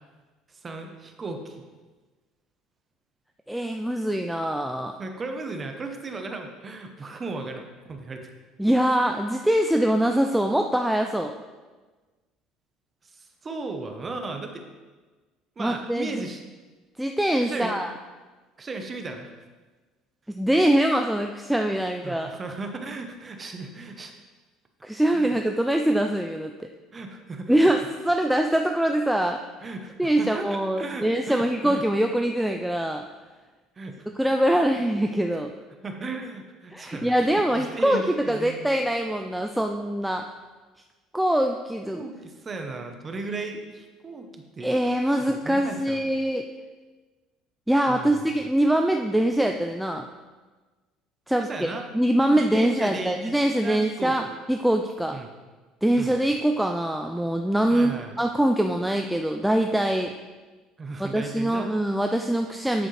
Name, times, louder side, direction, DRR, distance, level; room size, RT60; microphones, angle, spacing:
voice 1, 0.5-1.6 5.0-8.3 13.0-14.6 15.6-16.4 17.4-17.8 18.6-19.3 22.0-24.1 25.1-25.4 26.9-27.7 29.6-31.8 33.8-34.1 35.3-35.4 35.8-38.6 41.9-44.7 45.3-46.1 47.9-48.3 51.4-51.9 52.3-54.3 55.1-55.3 55.9-56.2 57.7-58.2 60.8-61.7, right 3 dB, 20° right, 5 dB, 0.9 m, -36 dB
voice 2, 3.5-4.9 8.6-11.3 15.6-16.2 17.0-17.9 20.4-22.3 24.8-26.5 27.5-29.4 30.0-33.1 34.2-35.5 36.7-40.3 41.1-42.0 44.6-46.5 47.7-50.1 51.3-51.5 51.9-54.2 54.5-55.2 55.8-60.1 61.0-62.9, right 1 dB, ahead, 4 dB, 0.3 m, -23 dB
8.0 x 7.5 x 3.3 m, 1.3 s
cardioid pair, 150°, 0 cm